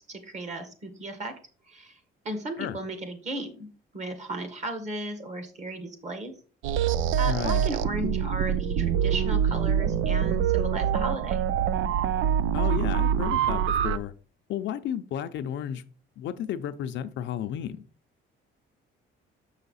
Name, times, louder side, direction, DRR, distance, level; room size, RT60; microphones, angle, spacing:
voice 1, 0.1-1.3 1.7-2.0 2.2-3.7 3.9-6.3 7.2-11.4, right 2 dB, 35° right, 7 dB, 1.6 m, -35 dB
sound 1, 6.6-14.0, right 8 dB, 70° right, 0.5 m, -25 dB
voice 2, 7.2-7.7 12.5-14.1 14.5-15.8 16.2-17.8, left 10 dB, 65° left, 10 dB, 0.6 m, -32 dB
7.0 x 5.7 x 4.1 m, 0.38 s
cardioid pair, 155°, 21 cm